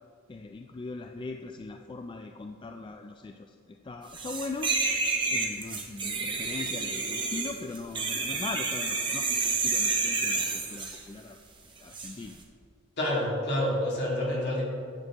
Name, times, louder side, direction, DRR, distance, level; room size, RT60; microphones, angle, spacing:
voice 1, 0.3-4.7 5.3-11.4 11.8-12.4, left 3 dB, 25° left, 4 dB, 0.3 m, -40 dB
sound 1, 4.1-11.0 11.9-12.1, right 4 dB, 25° right, 1.0 m, -29 dB
voice 2, 13.0-14.6, left 1 dB, 55° left, -4 dB, 2.2 m, -28 dB
10.5 x 6.8 x 3.6 m, 2.4 s
head